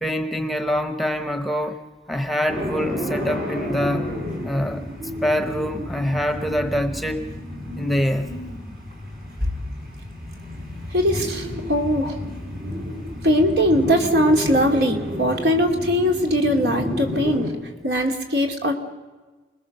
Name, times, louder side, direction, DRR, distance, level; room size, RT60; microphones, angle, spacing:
voice 1, 0.0-4.1 4.4-4.8 5.2-7.3 7.8-8.3, equal, ahead, 7 dB, 0.9 m, -25 dB
sound 1, 2.5-17.5, equal, 55° right, 5.9 m, -31 dB
voice 2, 10.9-12.2 13.2-17.5 17.8-18.7, equal, 75° right, 3 dB, 2.7 m, -20 dB
29.5 x 20.5 x 6.7 m, 1.3 s
head